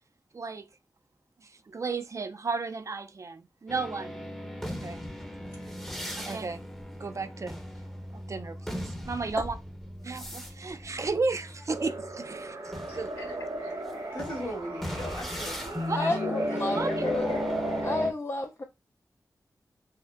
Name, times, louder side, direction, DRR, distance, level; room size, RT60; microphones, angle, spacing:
voice 1, 0.3-0.7 1.4-4.2 4.6-5.0 6.2-6.6 7.0-7.6 8.1-9.6 10.0-12.6 12.9-13.5 15.9-16.1 16.8-16.9, right 4 dB, 45° right, 0.3 m, -34 dB
sound 1, 3.7-12.2 12.6-18.1, left 1 dB, 5° left, 0.6 m, -37 dB
sound 2, 11.7-18.1, right 2 dB, 80° right, 1.2 m, -35 dB
voice 2, 14.1-15.9 16.2-17.4, left 1 dB, 60° left, 1.7 m, -39 dB
voice 3, 15.9-17.4 17.8-18.6, left 3 dB, 35° left, 0.3 m, -31 dB
4.2 x 2.0 x 2.4 m
wide cardioid pair, 80°, 7 cm